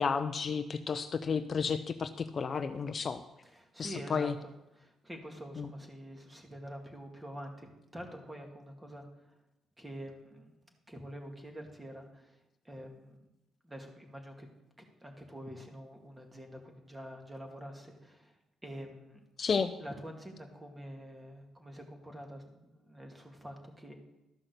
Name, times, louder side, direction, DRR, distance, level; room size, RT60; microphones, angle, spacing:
voice 1, 0.0-3.2 3.8-4.3 5.6-5.7 19.4-19.8, left 5 dB, 45° left, 10 dB, 0.6 m, -32 dB
voice 2, 3.4-9.4 9.8-10.5 10.9-12.4 12.6-13.2 13.6-14.5 14.8-19.2 19.8-23.9, equal, 15° right, 2 dB, 2.2 m, -46 dB
13.0 x 5.9 x 6.6 m, 0.93 s
cardioid pair, 90°, 0 cm